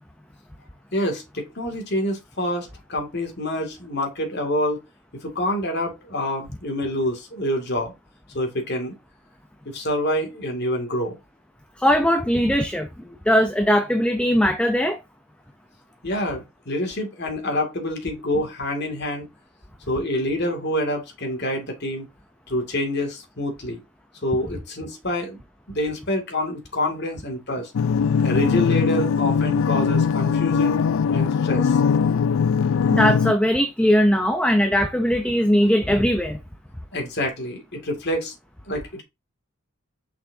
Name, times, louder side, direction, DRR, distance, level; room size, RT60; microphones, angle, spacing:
voice 1, 0.9-4.8 5.2-7.9 8.3-8.9 9.6-11.2 16.0-19.3 19.9-22.1 22.5-23.8 24.2-25.4 25.7-27.7 28.2-30.8 31.1-31.8 36.9-38.3 38.7-39.0, left 1 dB, 55° left, 2.4 m, -27 dB
voice 2, 11.8-15.0 32.9-36.4, equal, 5° left, 0.6 m, -20 dB
sound 1, 27.7-33.3, left 6 dB, 80° left, 0.3 m, -20 dB
6.9 x 5.8 x 2.8 m
head